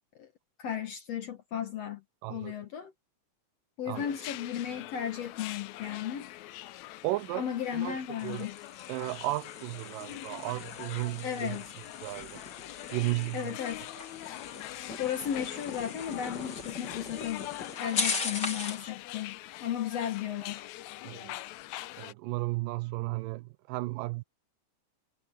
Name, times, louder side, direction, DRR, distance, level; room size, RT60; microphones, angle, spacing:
voice 1, 0.6-2.0 2.3-2.9 3.8-6.3 7.3-8.6 11.2-11.7 13.3-13.9 14.2-14.4 15.0-17.5 17.8-20.7, left 9 dB, 60° left, 2.0 m, -35 dB
voice 2, 2.2-2.5 3.9-4.0 7.0-8.0 8.2-8.5 8.9-11.6 12.0-12.4 12.9-13.6 13.9-14.0 21.0-21.4 22.0-24.2, right 20 dB, 85° right, 2.3 m, -34 dB
sound 1, 3.9-22.1, left 16 dB, 80° left, 1.7 m, -44 dB
sound 2, 8.2-18.9, left 4 dB, 35° left, 2.8 m, -39 dB
omnidirectional pair, 3.8 m